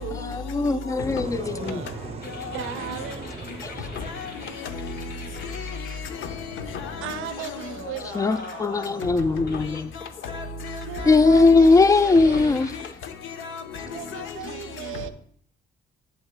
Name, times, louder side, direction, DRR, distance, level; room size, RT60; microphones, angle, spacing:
voice 1, 0.2-1.8 3.6-3.7 8.1-9.9 11.1-12.7, left 3 dB, 15° left, 0.3 m, -19 dB
sound 1, 1.0-6.9, right 4 dB, 30° right, 0.6 m, -40 dB
voice 2, 1.3-2.2 2.5-3.3 7.0-9.4 10.9-12.6 13.8-15.1, right 11 dB, 80° right, 0.5 m, -37 dB
sound 2, 2.2-6.8 7.3-7.7 8.3-9.0 9.5-9.9 10.6-11.3 11.8-14.2, left 3 dB, 55° left, 1.6 m, -46 dB
voice 3, 6.6-7.1 7.5-7.6 10.3-11.2 13.4-13.6 14.1-14.2, left 4 dB, 80° left, 0.8 m, -34 dB
8.0 x 7.2 x 2.2 m
cardioid pair, 90°, 20 cm